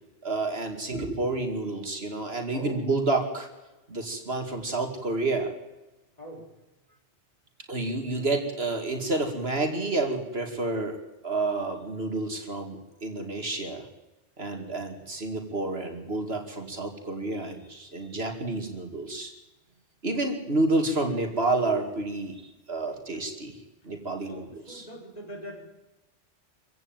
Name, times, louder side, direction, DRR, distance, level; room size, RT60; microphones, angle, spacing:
voice 1, 0.2-3.5 3.9-5.5 7.7-13.9 14.4-19.3 20.0-22.4 22.7-23.5 23.8-24.9, right 2 dB, 60° right, 4 dB, 2.9 m, -29 dB
voice 2, 24.2-25.6, equal, 35° left, 0 dB, 5.1 m, -42 dB
25.0 x 15.5 x 9.1 m, 1.0 s
omnidirectional pair, 1.2 m